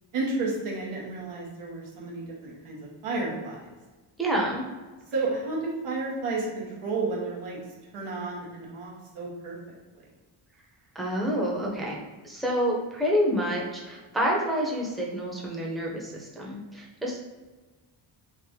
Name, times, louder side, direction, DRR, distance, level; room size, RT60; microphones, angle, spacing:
voice 1, 0.1-2.8 3.0-3.6 5.1-7.6 7.9-9.6, right 3 dB, 90° right, -3 dB, 1.2 m, -31 dB
voice 2, 4.2-4.6 10.9-12.0 12.2-17.2, equal, ahead, -3 dB, 0.7 m, -28 dB
3.4 x 2.6 x 3.6 m, 1.2 s
cardioid pair, 95°, 50 cm